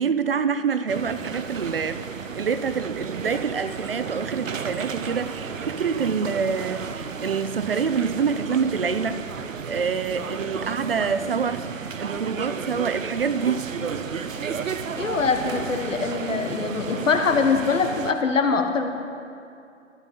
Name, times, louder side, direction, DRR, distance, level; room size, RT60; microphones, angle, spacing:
voice 1, 0.0-2.0 2.3-13.7, right 6 dB, 50° right, 0.5 m, -26 dB
sound 1, 0.9-18.1, right 6 dB, 90° right, 0.8 m, -33 dB
voice 2, 15.0-18.9, left 5 dB, 80° left, 1.3 m, -23 dB
12.5 x 4.2 x 8.0 m
hypercardioid pair, 160°, 38 cm